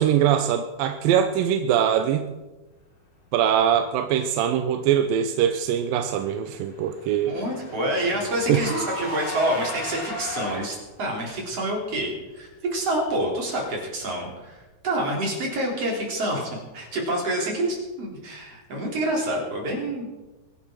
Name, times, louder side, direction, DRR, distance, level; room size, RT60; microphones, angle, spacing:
voice 1, 0.0-2.3 3.3-7.3 8.5-8.6, right 9 dB, 80° right, 7 dB, 2.4 m, -22 dB
Car / Engine, 5.9-10.9, left 1 dB, 70° left, 8.2 m, -36 dB
voice 2, 7.2-20.2, right 1 dB, 40° right, -1 dB, 4.5 m, -27 dB
23.5 x 11.0 x 4.6 m, 1.2 s
omnidirectional pair, 4.3 m